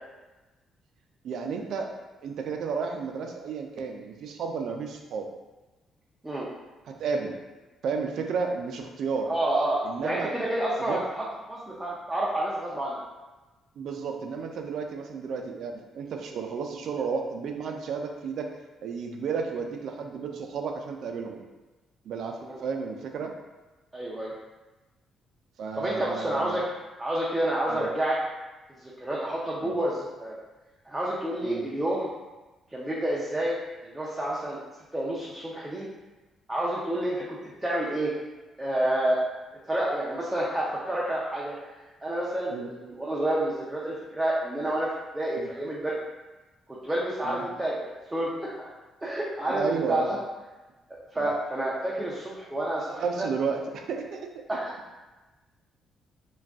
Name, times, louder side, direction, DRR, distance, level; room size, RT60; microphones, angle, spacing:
voice 1, 1.2-1.9 2.2-5.3 6.9-7.3 7.8-9.3 9.8-10.3 10.8-11.0 13.8-18.5 18.8-21.4 22.0-23.3 25.6-26.6 27.7-27.9 29.6-29.7 31.4-31.6 42.5-42.7 45.4-45.5 47.2-47.4 49.5-50.1 51.2-51.3 52.9-54.4, right 5 dB, 70° right, 3 dB, 0.4 m, -32 dB
voice 2, 9.3-13.0 22.4-22.6 23.9-24.3 25.7-26.6 27.0-28.2 28.8-30.3 30.9-32.1 32.7-34.6 34.9-35.9 36.5-38.1 38.6-39.2 39.7-41.6 42.0-42.5 42.8-44.9 45.1-46.0 46.7-48.5 49.0-50.2 51.1-53.3 54.5-54.7, right 1 dB, 10° right, -5 dB, 0.5 m, -29 dB
2.4 x 2.2 x 3.4 m, 1.2 s
cardioid pair, 90°, 0 cm